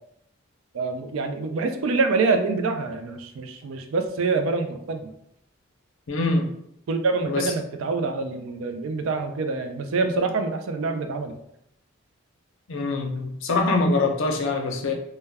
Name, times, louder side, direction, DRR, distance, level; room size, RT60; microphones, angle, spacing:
voice 1, 0.7-5.1 6.9-11.4, right 3 dB, 75° right, 7 dB, 0.3 m, -26 dB
voice 2, 6.1-6.5 7.2-7.5 12.7-14.9, left 3 dB, 65° left, 2 dB, 0.5 m, -24 dB
2.2 x 2.1 x 3.3 m, 0.74 s
head